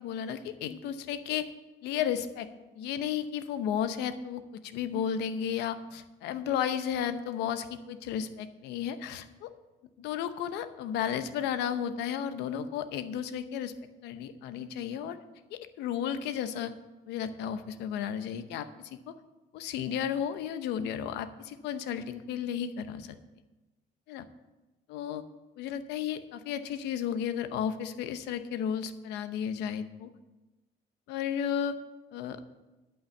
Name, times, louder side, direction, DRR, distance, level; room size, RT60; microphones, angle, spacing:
voice 1, 0.0-1.5 1.8-2.5 2.8-9.5 10.0-13.7 14.0-15.2 15.5-16.7 17.1-19.1 19.5-23.2 24.1-24.3 24.9-25.2 25.6-30.1 31.1-31.8 32.1-32.5, left 8 dB, 85° left, 11 dB, 0.8 m, -33 dB
12.0 x 5.6 x 7.0 m, 1.1 s
cardioid pair, 110°, 17 cm